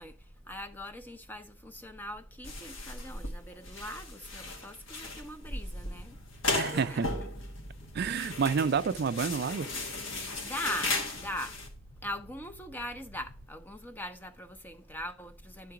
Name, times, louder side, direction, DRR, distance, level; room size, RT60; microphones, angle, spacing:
voice 1, 0.0-6.2 6.5-7.2 10.1-11.6 12.0-15.7, left 1 dB, 10° left, 0.6 m, -41 dB
sound 1, 2.4-11.7, left 2 dB, 70° left, 1.4 m, -36 dB
sound 2, 5.7-13.5, equal, 55° left, 0.8 m, -54 dB
voice 2, 6.5-7.2 7.9-9.7, right 6 dB, 50° right, 0.4 m, -29 dB
10.5 x 3.8 x 4.7 m
head